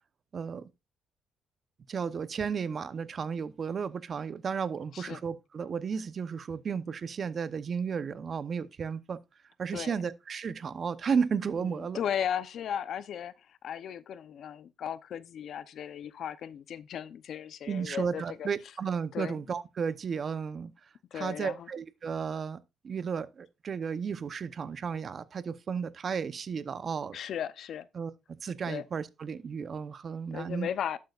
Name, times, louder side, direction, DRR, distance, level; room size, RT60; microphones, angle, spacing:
voice 1, 0.3-0.7 1.9-9.2 9.6-12.0 17.7-20.7 21.1-27.2 27.9-28.1 28.4-30.7, right 6 dB, 50° right, 0.8 m, -33 dB
voice 2, 11.6-18.5 19.1-19.4 21.1-21.7 27.1-27.9 28.7-28.9 30.3-31.0, left 9 dB, 65° left, 0.7 m, -36 dB
11.5 x 8.4 x 2.5 m
cardioid pair, 85°, 0 cm